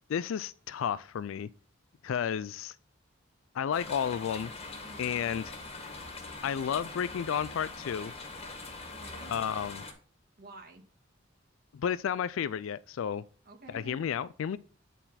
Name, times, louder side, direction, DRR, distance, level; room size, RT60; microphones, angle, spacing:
voice 1, 0.1-1.5 2.0-2.8 3.5-4.5 5.0-5.4 6.4-8.1 9.3-9.8 11.7-13.2 13.7-14.6, left 8 dB, 80° left, 0.3 m, -32 dB
sound 1, 3.7-9.9, left 3 dB, 30° left, 1.7 m, -43 dB
voice 2, 4.8-5.2 8.9-9.3 10.4-10.8 13.5-14.0, right 2 dB, 50° right, 1.8 m, -50 dB
10.0 x 4.1 x 4.1 m
head